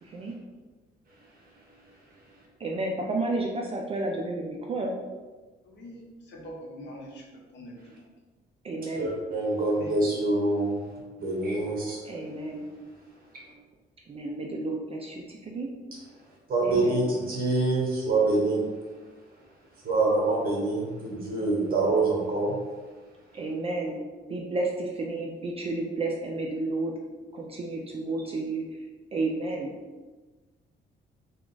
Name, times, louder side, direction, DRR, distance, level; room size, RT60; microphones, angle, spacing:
voice 1, 0.0-0.3 2.6-4.9 8.6-9.1 12.0-12.7 14.1-15.7 16.6-17.1 23.3-24.0 24.3-26.9 27.3-28.7 29.1-29.7, right 2 dB, 30° right, 0 dB, 0.4 m, -31 dB
voice 2, 5.6-6.0 6.2-7.3 7.5-7.9 9.7-9.9, equal, 70° left, -2 dB, 1.0 m, -43 dB
voice 3, 8.9-10.8 11.2-12.0 13.3-13.4 16.5-18.7 19.8-22.6, right 2 dB, 50° right, -2 dB, 1.2 m, -25 dB
3.6 x 2.4 x 3.8 m, 1.3 s
cardioid pair, 135°, 19 cm